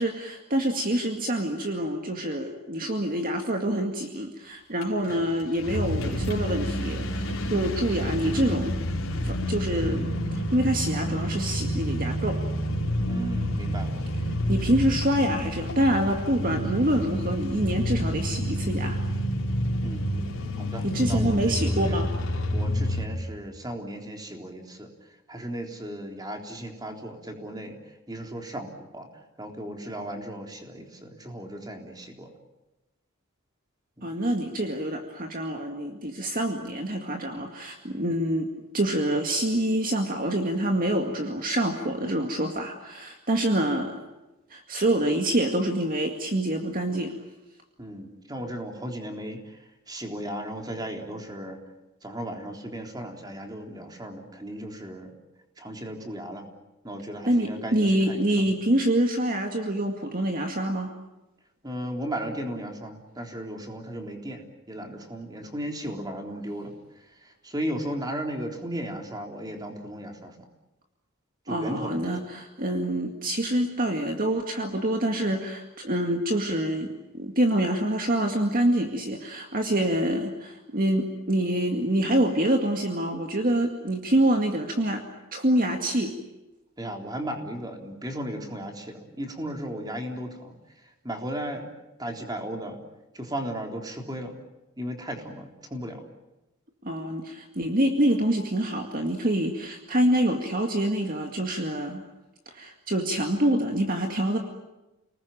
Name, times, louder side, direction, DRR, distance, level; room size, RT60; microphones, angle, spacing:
voice 1, 0.0-8.8 9.2-12.4 14.5-19.0 20.8-22.1 34.0-38.5 38.7-44.0 44.5-47.2 57.3-60.9 71.5-85.0 85.3-86.1 96.8-102.0 102.5-104.4, right 1 dB, 40° right, 3 dB, 2.2 m, -26 dB
sound 1, 4.8-4.9 5.1-23.1, equal, 70° left, 4.3 m, -29 dB
voice 2, 13.1-14.0 19.8-20.1 20.6-22.0 22.5-24.9 25.3-32.3 34.0-34.1 47.8-51.6 52.0-55.1 55.6-56.5 56.8-58.5 61.6-70.4 71.5-72.2 86.8-91.7 92.0-92.8 93.1-94.4 94.8-96.0, right 1 dB, 20° right, 2 dB, 3.7 m, -36 dB
30.0 x 20.0 x 9.0 m, 1.0 s
head